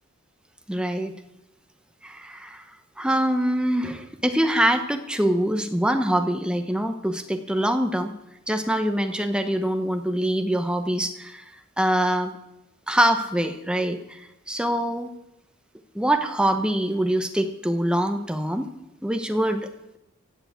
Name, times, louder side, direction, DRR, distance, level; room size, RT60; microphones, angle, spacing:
voice 1, 0.7-1.1 2.0-2.6 3.0-8.1 8.5-11.4 11.8-12.3 12.9-15.1 15.9-18.7 19.0-19.7, right 1 dB, 5° right, 6 dB, 1.0 m, -24 dB
16.0 x 6.9 x 8.4 m, 0.90 s
head